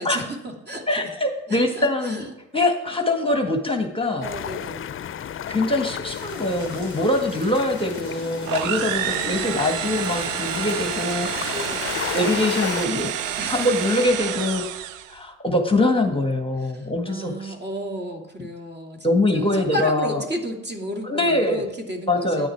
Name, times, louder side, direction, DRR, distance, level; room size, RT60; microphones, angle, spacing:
voice 1, 0.0-0.8 1.5-2.3 4.2-5.1 8.9-10.3 11.4-12.0 13.4-13.7 16.7-19.0 19.3-22.5, equal, 25° right, 2 dB, 2.6 m, -33 dB
voice 2, 0.9-2.3 2.5-4.3 5.5-11.7 12.1-13.1 13.5-14.6 15.1-17.5 19.0-20.2 21.0-21.7 22.1-22.5, left 2 dB, 15° left, 4 dB, 1.7 m, -23 dB
sound 1, 4.2-12.9, left 9 dB, 35° left, 0.6 m, -33 dB
sound 2, 6.1-14.1, right 2 dB, 50° right, 3.6 m, -46 dB
sound 3, 8.5-15.2, right 11 dB, 90° right, 0.6 m, -29 dB
10.0 x 10.0 x 4.6 m, 1.0 s
hypercardioid pair, 50°, 38 cm